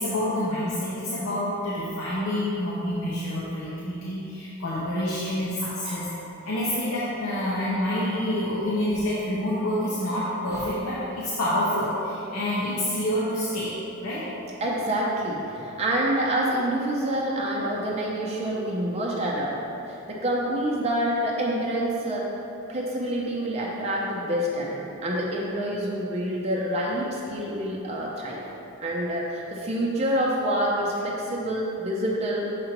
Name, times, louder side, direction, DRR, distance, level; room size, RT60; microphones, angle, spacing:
voice 1, 0.0-6.1 6.4-13.7 14.0-14.3, left 1 dB, 85° left, -8 dB, 0.9 m, -27 dB
voice 2, 14.6-19.5 19.9-22.2 22.7-28.4 28.8-32.5, right 1 dB, 30° right, -4 dB, 0.6 m, -27 dB
6.6 x 5.2 x 2.9 m, 2.9 s
head